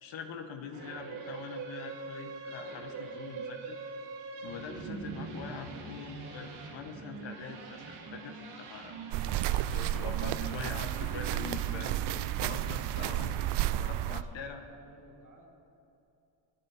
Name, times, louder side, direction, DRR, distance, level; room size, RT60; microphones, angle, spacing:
voice 1, 0.0-3.8 4.4-8.9 9.7-13.5 13.8-14.6, left 6 dB, 60° left, 5 dB, 1.6 m, -43 dB
sound 1, 0.7-14.3, right 4 dB, 85° right, 3.2 m, -43 dB
sound 2, 9.1-14.2, right 13 dB, 55° right, 0.6 m, -32 dB
voice 2, 14.6-15.5, right 2 dB, 35° right, -1 dB, 3.8 m, -58 dB
25.0 x 9.0 x 4.4 m, 2.7 s
supercardioid pair, 70°, 50 cm